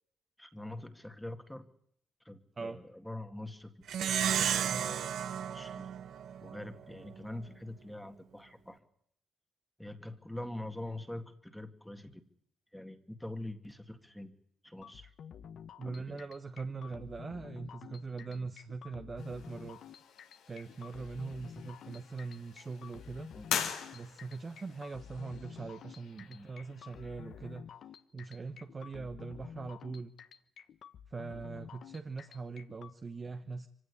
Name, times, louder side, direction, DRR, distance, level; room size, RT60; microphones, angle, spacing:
voice 1, 0.4-1.6 2.2-5.9 6.4-8.8 9.8-12.2 12.7-14.3 14.6-15.1 15.8-16.2 23.4-23.5 26.3-26.5, left 1 dB, 5° left, 6 dB, 2.1 m, -44 dB
Plucked string instrument, 3.9-6.7, right 9 dB, 70° right, 1.0 m, -33 dB
sound 1, 14.8-32.9, left 8 dB, 65° left, 1.2 m, -50 dB
voice 2, 15.8-19.8 20.5-23.3 23.9-27.7 28.1-30.1 31.1-33.7, right 4 dB, 35° right, 6 dB, 1.2 m, -42 dB
sound 2, 19.2-27.6, left 8 dB, 90° left, 3.5 m, -43 dB
24.0 x 16.5 x 9.9 m, 0.70 s
cardioid pair, 90°, 0 cm